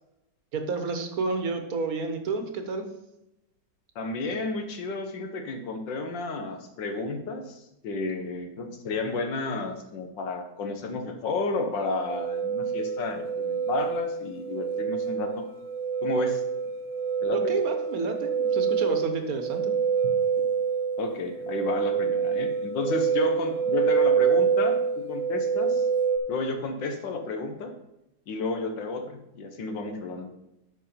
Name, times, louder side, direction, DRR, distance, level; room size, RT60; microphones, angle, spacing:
voice 1, 0.5-2.8 17.3-19.7, right 4 dB, 55° right, 6 dB, 1.4 m, -30 dB
voice 2, 4.0-15.5 16.0-16.4 17.2-17.4 20.4-20.5 21.0-25.9 26.3-27.7 28.3-30.3, left 3 dB, 90° left, 6 dB, 1.8 m, -32 dB
sound 1, 12.0-26.2, right 6 dB, 30° right, 0.8 m, -26 dB
9.0 x 6.1 x 4.4 m, 0.89 s
omnidirectional pair, 1.9 m